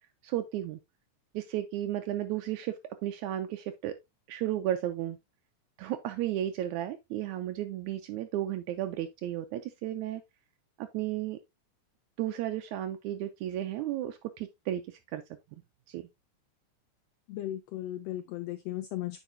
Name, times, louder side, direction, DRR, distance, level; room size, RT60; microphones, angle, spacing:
voice 1, 0.2-0.8 1.3-3.9 4.3-5.2 5.8-10.2 10.8-11.4 12.2-15.2 15.9-16.1, right 12 dB, 80° right, 1.9 m, -33 dB
voice 2, 17.3-19.2, left 14 dB, 85° left, 1.4 m, -36 dB
9.1 x 5.5 x 2.6 m
omnidirectional pair, 3.5 m